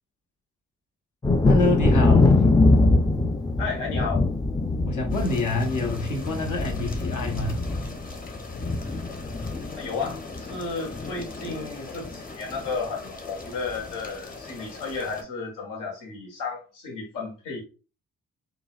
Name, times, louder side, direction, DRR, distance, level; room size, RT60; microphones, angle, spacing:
Thunder, 1.2-10.7 10.9-11.6 12.1-12.2 12.5-12.8, left 2 dB, 10° left, 0.4 m, -23 dB
voice 1, 1.5-2.5 4.8-7.6, left 2 dB, 65° left, 1.0 m, -27 dB
voice 2, 3.6-4.3 9.7-17.6, left 4 dB, 85° left, 1.2 m, -33 dB
sound 1, 5.1-15.2, left 3 dB, 25° left, 1.0 m, -42 dB
3.8 x 2.3 x 2.3 m
supercardioid pair, 55°, 32 cm